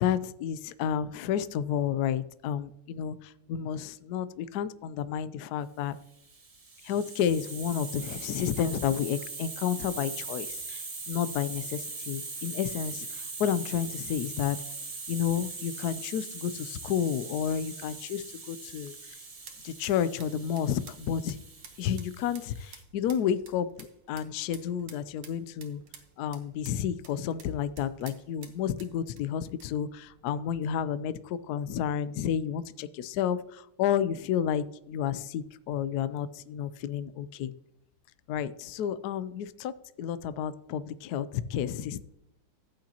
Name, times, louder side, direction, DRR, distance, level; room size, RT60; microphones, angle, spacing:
voice 1, 0.0-6.0 6.8-14.6 15.1-19.0 19.6-21.4 21.8-25.8 26.2-37.5 38.3-39.7 40.0-42.0, left 9 dB, 80° left, 14 dB, 0.8 m, -31 dB
Hiss, 6.2-22.8, right 4 dB, 60° right, 0.3 m, -41 dB
sound 1, 18.7-30.3, right 7 dB, 85° right, 2.2 m, -54 dB
14.0 x 8.6 x 2.9 m, 0.80 s
omnidirectional pair, 2.3 m